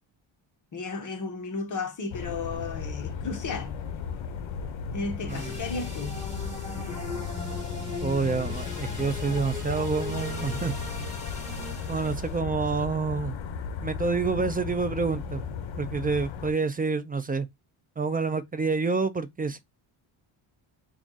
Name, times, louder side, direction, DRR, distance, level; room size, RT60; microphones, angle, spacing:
voice 1, 0.7-3.8 4.9-6.2, left 3 dB, 40° left, 1.1 m, -34 dB
sound 1, 2.1-16.5, left 6 dB, 70° left, 0.8 m, -35 dB
sound 2, 5.3-12.4, left 2 dB, 15° left, 2.0 m, -39 dB
voice 2, 8.0-10.8 11.9-13.4 13.8-15.5 15.8-17.5 18.0-19.6, right 4 dB, 20° right, 0.4 m, -28 dB
3.5 x 2.4 x 3.8 m
cardioid pair, 115°, 48 cm